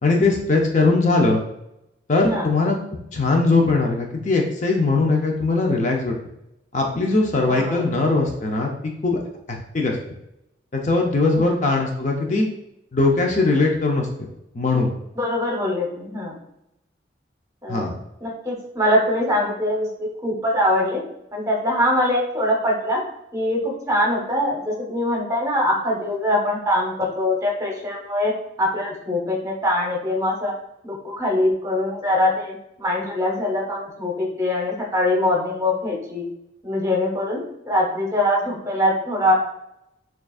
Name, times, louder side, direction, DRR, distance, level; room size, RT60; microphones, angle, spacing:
voice 1, 0.0-1.4 2.1-2.8 3.1-6.2 6.7-9.2 9.5-10.0 10.7-12.5 12.9-14.1 14.5-14.9 17.7-17.9, left 3 dB, 40° left, 1 dB, 0.5 m, -20 dB
voice 2, 7.5-7.8 11.3-11.5 15.2-16.4 17.6-17.8 18.2-21.0 21.3-23.0 23.3-28.3 28.6-30.5 30.8-36.2 36.6-39.3, left 1 dB, 15° right, -2 dB, 0.9 m, -23 dB
6.7 x 2.4 x 2.4 m, 0.83 s
head